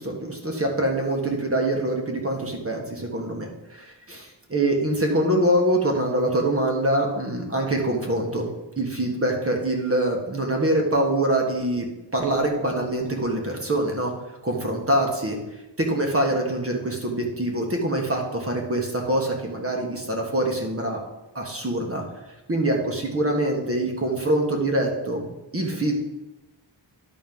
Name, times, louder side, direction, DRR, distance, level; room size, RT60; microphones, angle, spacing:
voice 1, 0.0-8.5 8.8-11.9 12.1-14.1 14.4-15.4 15.8-21.0 21.3-22.0 22.5-26.0, right 1 dB, 30° right, 1 dB, 1.6 m, -24 dB
11.0 x 4.2 x 5.4 m, 1.0 s
wide cardioid pair, 110°, 45 cm